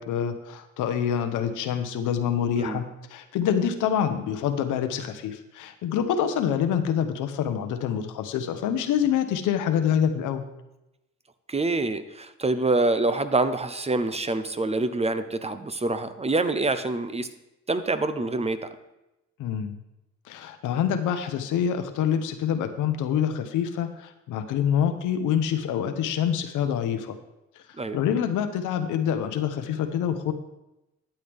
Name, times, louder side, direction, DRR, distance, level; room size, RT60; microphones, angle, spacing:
voice 1, 0.0-10.5 19.4-19.8 20.3-27.2 27.9-30.3, left 8 dB, 85° left, 8 dB, 1.0 m, -26 dB
voice 2, 11.5-17.3 17.7-18.6 27.8-28.0, right 2 dB, 20° right, 11 dB, 0.7 m, -26 dB
12.0 x 8.6 x 3.6 m, 0.92 s
cardioid pair, 90°, 30 cm